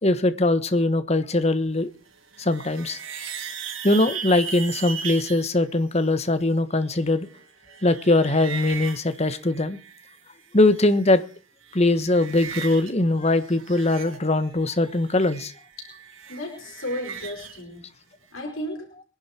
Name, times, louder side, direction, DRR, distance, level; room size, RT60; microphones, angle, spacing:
voice 1, 0.0-1.9 2.4-3.0 3.8-7.3 7.8-9.8 10.5-11.2 11.7-15.5, left 2 dB, 30° left, 1.4 m, -21 dB
sound 1, 2.1-5.5 6.8-10.2 10.5-11.3 11.6-12.9 13.2-17.6, right 7 dB, 80° right, 3.3 m, -38 dB
voice 2, 16.3-17.9 18.3-18.9, left 1 dB, 85° left, 5.3 m, -34 dB
24.5 x 11.0 x 4.5 m
head